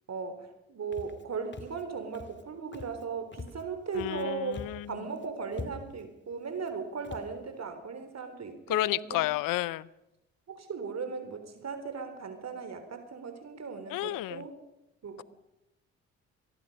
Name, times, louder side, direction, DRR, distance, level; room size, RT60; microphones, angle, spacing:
voice 1, 0.1-4.6 4.9-9.3 10.5-14.5 15.0-15.2, right 5 dB, 50° right, 8 dB, 3.8 m, -37 dB
Walk footsteps, 0.9-1.2 1.5-1.8 2.1-2.4 2.7-3.0 3.3-4.2 4.5-4.9 5.2-5.3 5.5-6.0 6.6-6.7 7.0-7.3, left 3 dB, 30° left, 2.5 m, -44 dB
voice 2, 3.9-4.9 8.7-9.9 13.9-14.4, left 17 dB, 70° left, 22 dB, 0.8 m, -31 dB
24.0 x 22.5 x 5.4 m, 0.90 s
hypercardioid pair, 50°, 35 cm